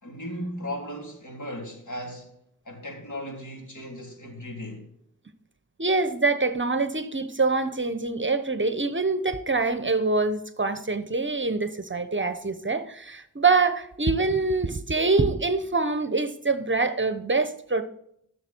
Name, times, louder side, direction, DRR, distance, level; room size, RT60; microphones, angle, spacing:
voice 1, 0.0-2.3 2.7-4.9, equal, 60° left, 3.6 m, -36 dB
voice 2, 5.8-17.8, right 3 dB, 35° right, 0.9 m, -25 dB
14.5 x 7.1 x 4.5 m
wide cardioid pair, 50°, 34 cm